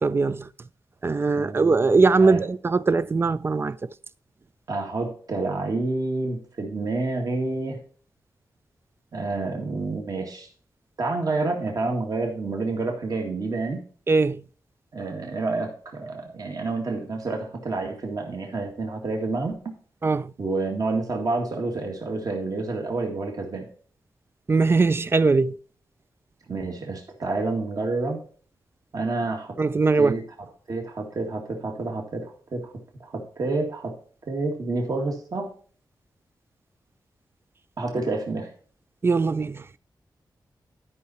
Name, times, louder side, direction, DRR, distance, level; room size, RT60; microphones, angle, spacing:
voice 1, 0.0-0.5 1.0-3.9 14.1-14.4 20.0-20.3 24.5-25.5 29.6-30.2 39.0-39.8, right 4 dB, 30° right, 0.3 m, -21 dB
voice 2, 1.4-2.4 4.7-7.8 9.1-10.5 11.0-13.8 14.9-19.7 20.4-23.6 26.5-28.2 28.9-29.6 29.9-30.2 30.7-32.7 33.0-33.9 34.3-35.5 37.8-38.5, right 3 dB, 50° right, 1.9 m, -29 dB
12.0 x 5.7 x 4.2 m
wide cardioid pair, 140°, 8 cm